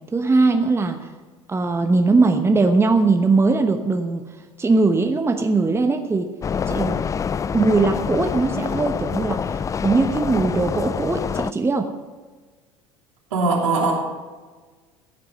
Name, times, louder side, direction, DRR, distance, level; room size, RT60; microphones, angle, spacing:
voice 1, 0.1-1.1 1.5-4.2 4.6-6.3 6.7-7.0 7.5-11.9, right 3 dB, 15° right, 6 dB, 1.0 m, -20 dB
sound 1, 6.4-11.5, left 6 dB, 20° left, 0.4 m, -26 dB
voice 2, 13.3-13.9, right 3 dB, 75° right, -1 dB, 3.1 m, -20 dB
15.5 x 9.2 x 5.6 m, 1.4 s
figure-of-eight pair, 70°, 17 cm